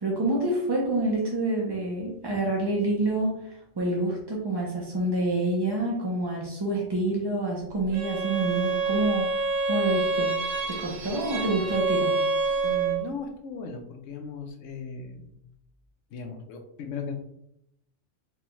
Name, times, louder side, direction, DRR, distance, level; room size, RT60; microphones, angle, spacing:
voice 1, 0.0-10.4 10.7-12.2, right 2 dB, 40° right, -3 dB, 0.3 m, -27 dB
Bowed string instrument, 7.9-13.1, right 4 dB, 80° right, 1.0 m, -27 dB
voice 2, 12.6-15.3 16.1-17.1, left 4 dB, 80° left, 4 dB, 1.0 m, -37 dB
4.4 x 2.2 x 3.0 m, 0.75 s
omnidirectional pair, 1.3 m